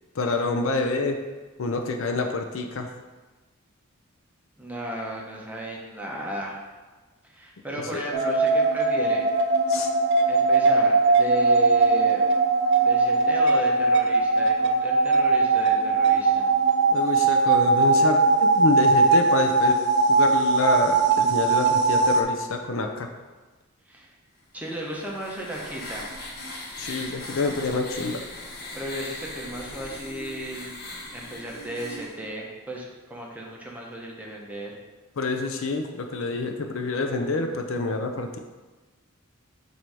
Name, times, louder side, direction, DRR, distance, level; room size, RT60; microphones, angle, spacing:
voice 1, 0.2-1.2 1.6-2.9 7.9-8.0 9.7-9.9 16.9-19.8 20.1-23.1 26.8-28.2 35.2-38.4, left 3 dB, 65° left, 5 dB, 0.5 m, -27 dB
voice 2, 4.6-6.6 7.2-9.3 10.3-12.3 12.8-16.5 23.9-24.1 24.5-26.1 28.7-30.8 31.1-34.7, right 1 dB, 5° right, -3 dB, 0.8 m, -35 dB
sound 1, 8.1-22.2, right 3 dB, 50° right, 0.5 m, -20 dB
sound 2, 24.6-32.2, left 2 dB, 45° left, 1.0 m, -39 dB
7.5 x 2.7 x 4.7 m, 1.3 s
head